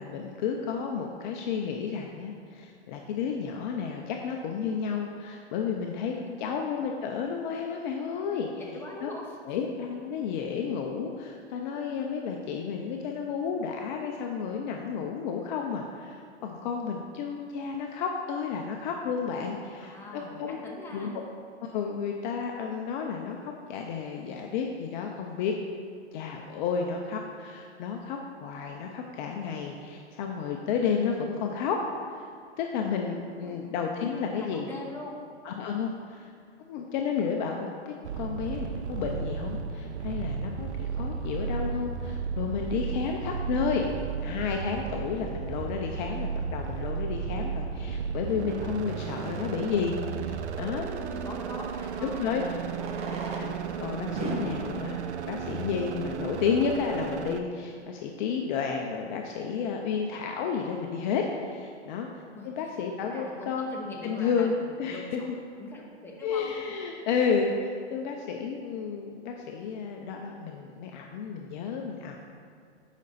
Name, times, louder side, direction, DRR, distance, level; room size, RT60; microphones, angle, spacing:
voice 1, 0.0-6.1 6.4-8.5 9.0-9.1 9.4-20.6 20.9-21.1 21.6-25.5 26.1-31.8 32.1-32.3 32.6-34.7 35.4-36.3 36.7-43.9 44.2-50.9 52.0-52.4 53.4-55.0 55.3-62.1 62.4-63.7 64.0-65.2 66.2-72.2, left 6 dB, 45° left, 2 dB, 0.7 m, -31 dB
voice 2, 8.6-9.4 19.8-21.2 33.3-33.6 34.3-35.2 51.0-53.1 62.3-62.5 63.0-64.5 64.8-65.0 65.6-66.5, left 2 dB, 5° left, -4 dB, 1.2 m, -42 dB
sound 1, 38.0-57.4, right 6 dB, 80° right, 0.6 m, -34 dB
Fireworks, 52.7-56.4 57.2-57.3 57.5-57.6 57.8-57.9 58.4-58.6, right 1 dB, 20° right, 0.8 m, -39 dB
8.2 x 5.2 x 4.1 m, 2.4 s
hypercardioid pair, 125°, 34 cm